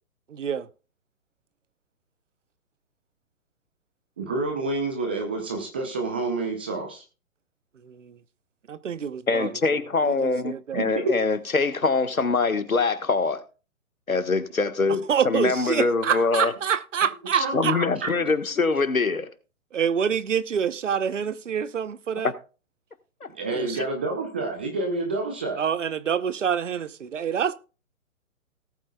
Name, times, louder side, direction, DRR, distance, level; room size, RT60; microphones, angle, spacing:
voice 1, 0.3-0.7 7.8-8.2 8.7-9.5 10.0-10.9 15.1-17.7 19.7-22.3 23.5-23.8 25.6-27.5, right 8 dB, 60° right, 0.9 m, -26 dB
voice 2, 4.2-7.0 10.7-11.1 17.3-18.1 23.3-25.6, right 3 dB, 10° right, 0.4 m, -28 dB
voice 3, 9.3-13.4 14.1-16.5 17.5-19.3 22.2-22.3 23.2-23.3, left 4 dB, 80° left, 1.5 m, -24 dB
18.0 x 8.8 x 2.3 m
figure-of-eight pair, 130°, 41 cm